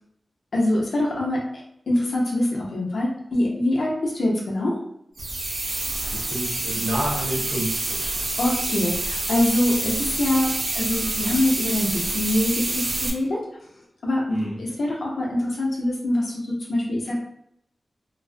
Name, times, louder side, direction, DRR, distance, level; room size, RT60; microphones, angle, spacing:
voice 1, 0.5-1.5 1.9-4.8 8.4-13.4 14.0-17.2, left 1 dB, 85° left, -3 dB, 0.7 m, -24 dB
sound 1, 5.2-13.1, right 2 dB, 65° right, 0.5 m, -27 dB
voice 2, 6.1-8.2 14.3-14.6, right 1 dB, 40° right, -7 dB, 0.9 m, -29 dB
2.3 x 2.0 x 2.6 m, 0.75 s
wide cardioid pair, 65°, 0 cm